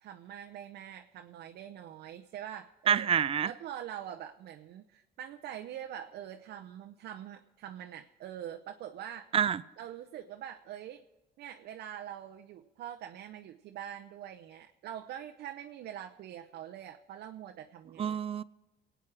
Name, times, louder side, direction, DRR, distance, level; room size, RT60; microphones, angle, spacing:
voice 1, 0.0-3.1 3.4-9.3 9.8-11.0 11.4-18.2, right 10 dB, 70° right, 0.8 m, -44 dB
voice 2, 2.9-3.5 9.3-9.6 18.0-18.4, right 8 dB, 35° right, 0.5 m, -27 dB
22.0 x 9.0 x 4.9 m
cardioid pair, 110°, 17 cm